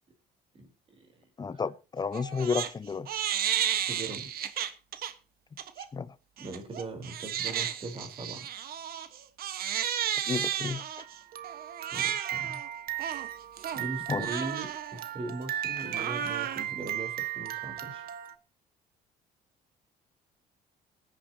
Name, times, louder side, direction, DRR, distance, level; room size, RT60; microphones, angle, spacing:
voice 1, 0.9-1.6 3.9-4.3 6.4-8.4 11.9-12.6 13.7-18.1, right 3 dB, 35° right, 4.1 m, -40 dB
voice 2, 1.4-3.1 5.9-6.1 10.3-10.8 14.1-14.5, left 5 dB, 25° left, 0.9 m, -32 dB
Crying sobbing, 2.1-2.7 3.1-5.1 5.6-5.9 6.4-18.3, right 10 dB, 60° right, 1.4 m, -33 dB
20.0 x 10.0 x 2.9 m
cardioid pair, 110°, 17 cm